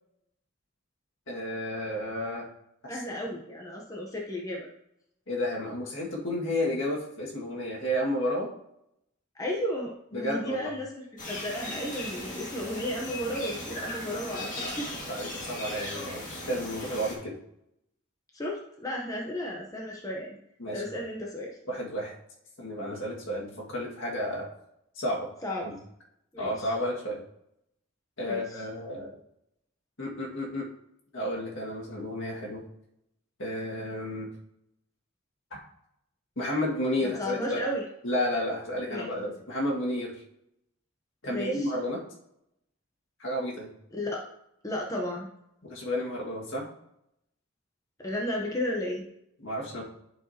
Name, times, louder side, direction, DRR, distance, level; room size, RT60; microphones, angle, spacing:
voice 1, 1.3-2.5 2.8-2.9 3.3-3.4 5.3-8.5 10.1-10.7 15.1-17.3 20.6-20.8 21.7-22.1 22.6-24.5 25.0-25.3 25.6-25.8 26.4-27.2 28.2-29.2 30.0-30.7 31.1-32.6 33.4-34.3 36.4-37.6 38.0-40.1 41.2-42.0 43.2-43.7 45.6-46.6 49.4-49.8, left 1 dB, 65° left, -3 dB, 2.0 m, -31 dB
voice 2, 2.9-4.7 9.4-14.9 18.3-20.4 20.7-21.6 25.4-25.7 26.3-26.7 28.2-28.4 37.0-37.8 38.9-39.1 41.3-41.7 43.9-44.2 44.6-45.2 48.0-49.0, left 1 dB, 15° left, -2 dB, 0.9 m, -34 dB
sound 1, 11.2-17.2, left 1 dB, 40° left, 1.9 m, -38 dB
11.5 x 4.8 x 2.9 m, 0.78 s
head